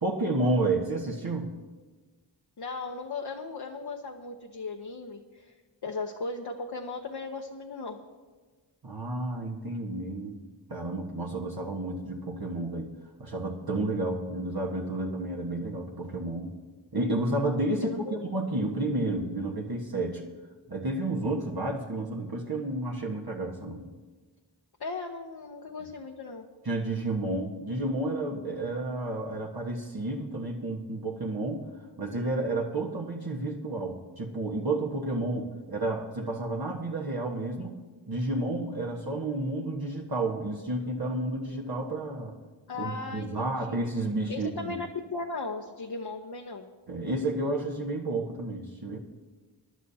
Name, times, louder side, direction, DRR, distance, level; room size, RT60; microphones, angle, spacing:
voice 1, 0.0-1.5 8.8-10.4 10.7-12.9 13.2-16.5 16.9-20.2 20.7-23.9 26.6-31.6 32.0-37.8 38.1-42.3 42.8-44.7 46.9-49.0, right 2 dB, 50° right, -1 dB, 1.4 m, -31 dB
voice 2, 2.6-5.5 5.8-8.0 17.8-18.2 24.8-26.4 42.7-43.8 44.3-44.9 45.1-46.7, left 3 dB, 60° left, 1 dB, 0.9 m, -37 dB
23.0 x 11.0 x 2.8 m, 1.3 s
wide cardioid pair, 45°, 45 cm